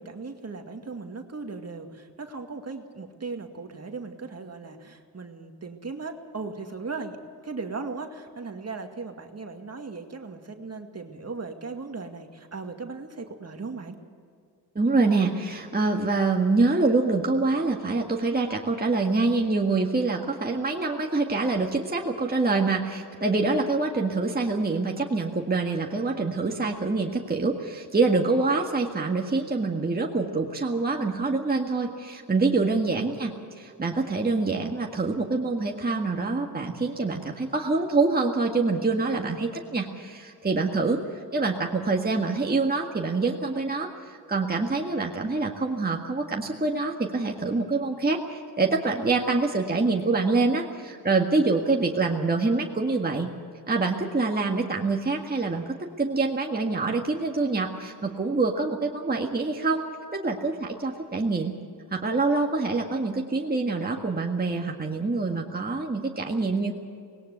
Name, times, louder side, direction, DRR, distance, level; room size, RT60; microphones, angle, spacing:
voice 1, 0.0-7.2 7.4-14.0, right 4 dB, 40° right, 4 dB, 2.1 m, -37 dB
voice 2, 14.8-53.3 53.7-59.8 60.1-61.6 61.9-66.7, right 3 dB, 20° right, 1 dB, 1.8 m, -25 dB
19.0 x 17.5 x 8.2 m, 2.3 s
cardioid pair, 70°, 40 cm